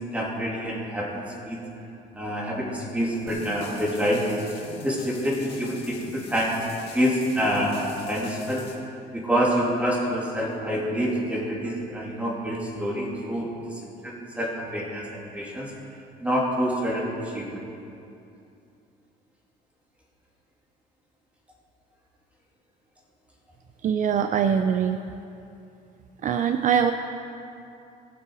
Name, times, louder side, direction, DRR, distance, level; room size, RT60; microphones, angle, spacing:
voice 1, 0.1-1.6 2.1-4.3 4.8-6.6 6.9-8.7 9.1-15.7 16.2-17.6, equal, 10° right, -4 dB, 3.1 m, -27 dB
sound 1, 3.3-8.7, left 5 dB, 85° left, 1.9 m, -43 dB
voice 2, 23.8-25.0 26.2-26.9, right 8 dB, 50° right, 8 dB, 0.5 m, -22 dB
19.0 x 7.6 x 4.9 m, 2.7 s
cardioid pair, 110°, 17 cm